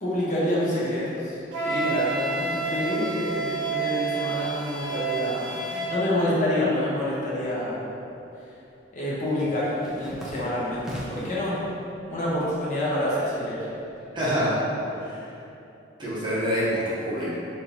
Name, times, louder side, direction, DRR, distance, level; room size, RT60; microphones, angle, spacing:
voice 1, 0.0-7.8 8.9-11.6 12.1-13.7, left 1 dB, 40° left, -8 dB, 0.7 m, -27 dB
Wind instrument woodwind instrument, 1.5-6.1, right 4 dB, 65° right, 0.6 m, -29 dB
sound 1, 8.0-8.3 8.6-11.4 11.9-12.5 12.8-14.5, equal, 5° right, 0.3 m, -41 dB
voice 2, 14.1-14.6 15.0-15.2 16.0-17.3, equal, 25° right, -9 dB, 0.7 m, -26 dB
3.4 x 2.6 x 2.8 m, 2.8 s
head